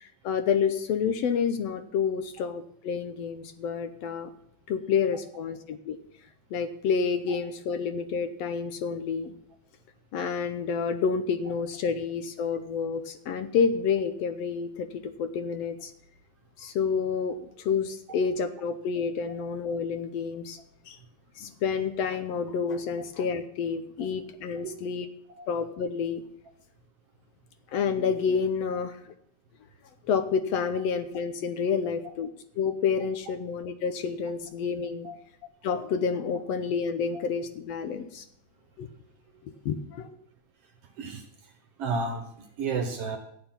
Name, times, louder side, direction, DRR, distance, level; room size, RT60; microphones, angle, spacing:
voice 1, 0.0-4.3 4.7-6.0 6.5-9.3 10.1-15.9 16.6-20.6 20.9-21.0 21.4-25.1 25.5-26.2 27.7-29.1 30.1-32.3 32.6-35.1 35.6-38.2 38.8-38.9 39.4-40.2, left 6 dB, 70° left, 9 dB, 1.7 m, -29 dB
voice 2, 41.8-43.2, right 4 dB, 60° right, 6 dB, 1.8 m, -32 dB
13.0 x 9.1 x 5.7 m, 0.70 s
omnidirectional pair, 3.6 m